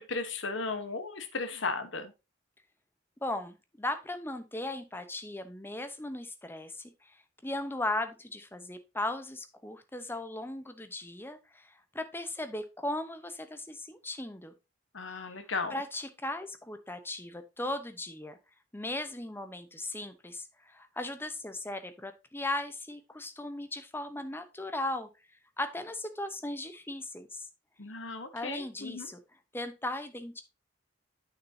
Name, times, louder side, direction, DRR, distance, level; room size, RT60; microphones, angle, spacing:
voice 1, 0.0-2.1 14.9-15.8 27.8-29.1, left 4 dB, 80° left, 9 dB, 1.2 m, -35 dB
voice 2, 3.2-7.1 7.4-14.5 15.7-18.4 18.7-25.1 25.6-27.5 28.3-29.2 29.5-30.4, left 1 dB, 10° left, 9 dB, 0.8 m, -37 dB
8.8 x 6.4 x 2.8 m, 0.26 s
head